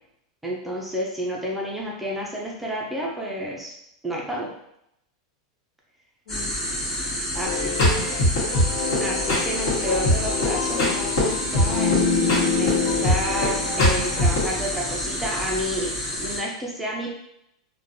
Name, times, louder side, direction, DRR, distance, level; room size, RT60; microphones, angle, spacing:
voice 1, 0.4-3.7 4.0-4.5 7.3-7.7 8.0-8.1 9.0-17.1, equal, 5° right, -3 dB, 0.4 m, -30 dB
voice 2, 6.2-8.4, left 1 dB, 80° left, -3 dB, 1.2 m, -45 dB
sound 1, 6.3-16.4, left 1 dB, 10° left, 0.9 m, -29 dB
sound 2, 7.4-14.5, left 2 dB, 60° left, 1.3 m, -23 dB
3.2 x 2.2 x 2.6 m, 0.77 s
supercardioid pair, 160°, 3 cm